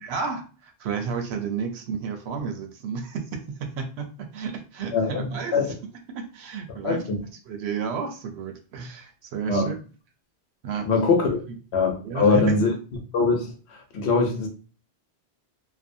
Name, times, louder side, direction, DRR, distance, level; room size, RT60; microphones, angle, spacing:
voice 1, 0.0-5.6 6.1-7.0 7.5-9.7 10.6-10.9 11.5-11.6 12.0-12.5, right 6 dB, 80° right, 0.8 m, -32 dB
voice 2, 4.9-5.7 6.8-7.2 9.5-9.7 10.8-11.3 11.7-12.7 13.1-14.5, left 4 dB, 80° left, 1.0 m, -22 dB
2.6 x 2.1 x 2.6 m
omnidirectional pair, 1.1 m